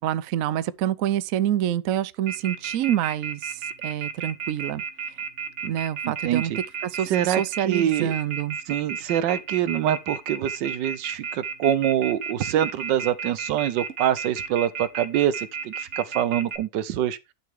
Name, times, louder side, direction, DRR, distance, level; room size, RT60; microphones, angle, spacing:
voice 1, 0.0-4.8 5.1-5.2 5.6-8.6, right 11 dB, 65° right, 0.9 m, -27 dB
Telephone, 2.3-16.6, right 7 dB, 45° right, 1.4 m, -32 dB
voice 2, 6.0-6.4 7.1-8.1 8.7-17.2, right 11 dB, 80° right, 1.4 m, -25 dB
11.0 x 6.3 x 3.6 m
omnidirectional pair, 1.9 m